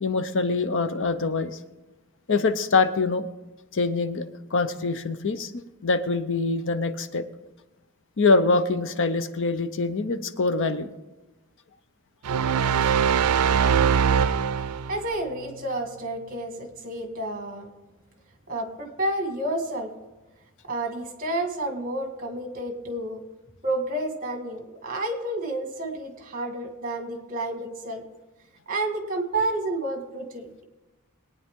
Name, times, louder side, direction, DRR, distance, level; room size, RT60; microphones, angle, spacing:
voice 1, 0.0-1.6 2.3-3.3 3.7-4.3 4.5-7.2 8.2-10.9 12.8-12.9, left 3 dB, 60° left, 11 dB, 0.7 m, -24 dB
sound 1, 12.2-15.0, right 7 dB, 85° right, 0.4 m, -22 dB
voice 2, 14.9-17.7 18.5-19.9 20.7-23.2 23.6-28.0 28.7-30.6, right 1 dB, 40° right, 4 dB, 1.9 m, -30 dB
22.0 x 9.3 x 3.7 m, 1.1 s
head